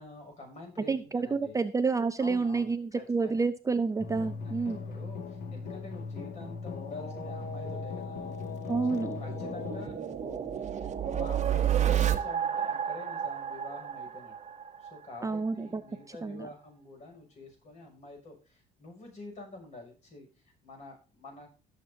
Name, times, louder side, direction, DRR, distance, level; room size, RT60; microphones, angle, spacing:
voice 1, 0.0-1.6 2.2-3.5 4.4-8.2 8.9-14.4 14.8-21.5, left 2 dB, 40° left, 1 dB, 6.6 m, -47 dB
voice 2, 0.9-4.8 8.7-9.2 15.2-15.8 16.2-16.5, right 4 dB, 20° right, 10 dB, 0.5 m, -29 dB
sound 1, 4.0-9.9, left 4 dB, 60° left, 2.0 m, -38 dB
sound 2, 8.2-15.0, right 9 dB, 45° right, 1.2 m, -31 dB
18.0 x 7.2 x 2.8 m, 0.35 s
cardioid pair, 110°, 17 cm